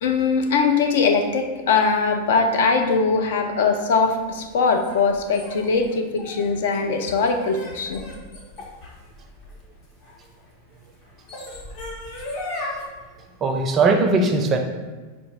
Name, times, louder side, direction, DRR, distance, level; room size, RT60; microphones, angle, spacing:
voice 1, 0.0-8.0, left 4 dB, 55° left, 5 dB, 0.4 m, -21 dB
sound 1, 4.1-10.3 11.0-12.8, left 1 dB, 40° left, 0.9 m, -36 dB
voice 2, 13.4-14.6, right 3 dB, 25° right, 4 dB, 0.5 m, -19 dB
4.9 x 2.4 x 3.5 m, 1.3 s
figure-of-eight pair, 90°, 0 cm